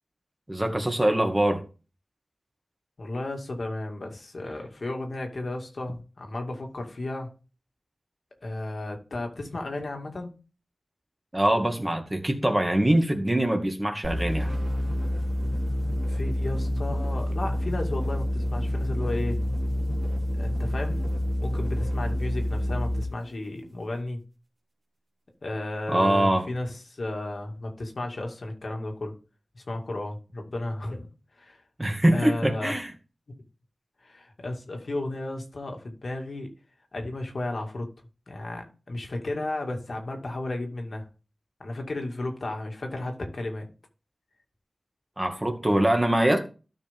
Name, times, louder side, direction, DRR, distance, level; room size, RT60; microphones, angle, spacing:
voice 1, 0.5-1.6 11.3-14.6 25.9-26.4 31.8-32.9 45.2-46.4, right 1 dB, 20° right, 2.2 m, -23 dB
voice 2, 3.0-7.3 8.4-10.3 16.0-19.4 20.3-21.0 21.4-24.2 25.4-29.2 29.5-31.1 31.3-31.6 32.1-32.8 33.3-33.4 34.0-36.5 36.9-37.9 38.3-41.1 41.6-43.7, left 2 dB, 70° left, 2.2 m, -33 dB
sound 1, 14.0-23.2, equal, 60° right, 3.2 m, -28 dB
13.0 x 5.8 x 3.6 m
wide cardioid pair, 50°, 0 cm